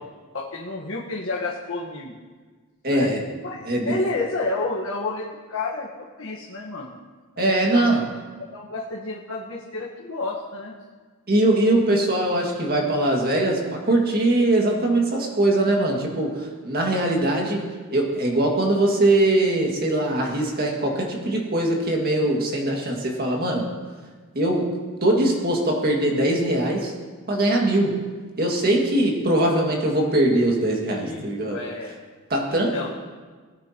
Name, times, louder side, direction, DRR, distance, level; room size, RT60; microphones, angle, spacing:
voice 1, 0.3-2.2 2.9-3.1 3.4-5.9 6.2-6.9 7.4-7.9 8.5-10.7 30.9-31.9 32.4-32.9, left 3 dB, 65° left, -4 dB, 1.3 m, -30 dB
voice 2, 2.8-3.2 3.7-3.9 7.4-8.0 11.3-17.6 17.9-23.7 24.4-24.7 25.0-26.9 27.3-28.0 28.4-31.6 32.3-32.7, right 1 dB, 45° right, 0 dB, 2.0 m, -21 dB
19.5 x 9.5 x 2.9 m, 1.4 s
head